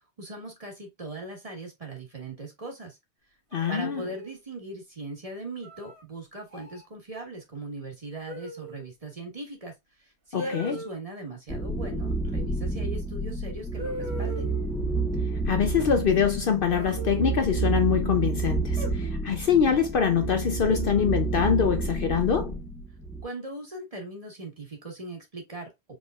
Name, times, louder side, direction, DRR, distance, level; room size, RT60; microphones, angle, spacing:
voice 1, 0.2-3.0 3.7-9.7 10.3-14.5 23.2-25.7, right 2 dB, 30° right, 1.3 m, -39 dB
voice 2, 3.5-4.0 10.3-10.8 15.5-22.6, left 7 dB, 60° left, 0.7 m, -24 dB
Dog whining impression, 3.5-4.4 5.6-6.0 6.5-6.8 8.3-8.9 10.4-11.0 12.9-13.0 13.8-14.8 16.7-17.8 18.8-19.4 20.6-21.2, right 1 dB, 70° right, 1.8 m, -39 dB
sound 1, 11.5-23.2, right 3 dB, 5° left, 0.6 m, -30 dB
4.9 x 3.5 x 2.4 m
omnidirectional pair, 1.2 m